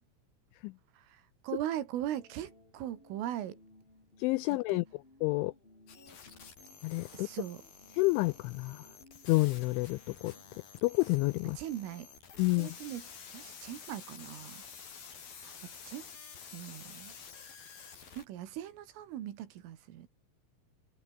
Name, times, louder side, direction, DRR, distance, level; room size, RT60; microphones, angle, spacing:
voice 1, 1.0-3.6 4.7-4.8 7.1-7.6 11.6-12.1 12.6-13.0 13.3-14.6 15.4-15.5 15.9-16.0 16.5-17.1 18.2-20.1, right 11 dB, 75° right, 4.6 m, -39 dB
sound 1, 2.0-10.6, left 2 dB, 10° left, 4.6 m, -61 dB
voice 2, 4.2-5.5 6.8-7.3 7.9-8.9 9.2-10.3 10.8-11.6 12.4-12.8, left 23 dB, 85° left, 2.7 m, -29 dB
sound 2, 5.9-18.3, left 6 dB, 45° left, 5.9 m, -50 dB
omnidirectional pair, 6.0 m